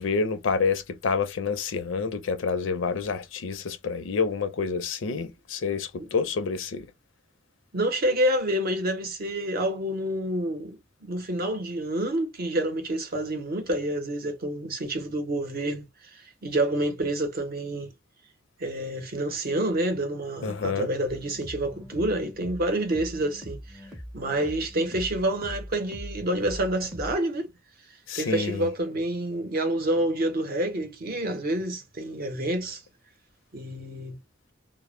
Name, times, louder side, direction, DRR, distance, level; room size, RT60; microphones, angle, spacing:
voice 1, 0.0-6.8 20.4-20.9 28.1-28.7, left 5 dB, 70° left, 0.5 m, -28 dB
voice 2, 7.7-15.8 16.4-17.9 18.6-23.8 24.1-27.5 28.1-32.8 33.5-34.2, right 1 dB, 50° right, 0.7 m, -28 dB
sound 1, 21.0-27.1, equal, 5° right, 0.5 m, -42 dB
2.0 x 2.0 x 2.9 m
head